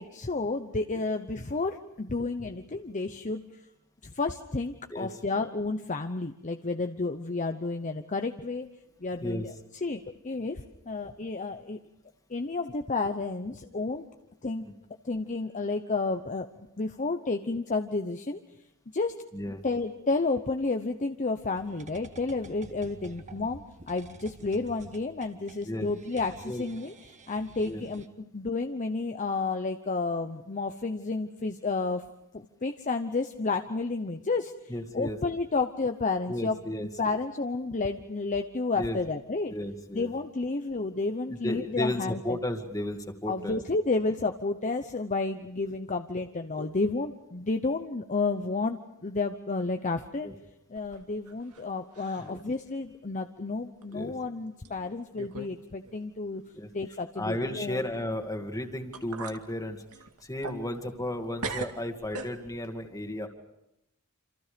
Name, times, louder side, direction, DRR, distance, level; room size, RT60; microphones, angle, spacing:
voice 1, 0.0-3.6 4.0-8.7 9.0-11.8 12.3-14.0 14.4-14.7 15.0-16.5 16.8-18.4 18.9-26.9 27.3-32.0 32.3-36.6 37.0-39.5 39.9-42.4 43.3-50.3 50.7-56.4 56.7-57.8, left 3 dB, 35° left, 7 dB, 0.8 m, -31 dB
sound 1, 21.6-28.1, right 2 dB, 35° right, 1.5 m, -49 dB
voice 2, 34.7-35.2 36.3-36.9 38.8-39.0 39.5-40.1 41.4-43.6 46.6-46.7 50.2-50.3 52.2-52.4 53.9-54.1 56.5-56.7 57.2-59.8 60.2-63.3, left 1 dB, 15° left, 5 dB, 2.3 m, -33 dB
sound 2, 50.8-51.7 51.9-52.4 52.8-52.9 53.8-53.9 54.6-54.7 55.2-55.6 55.8-55.9 58.5-58.6 58.9-59.4 59.9-61.1 61.4-62.7, right 3 dB, 80° right, 2.1 m, -39 dB
27.5 x 27.0 x 5.2 m, 0.86 s
head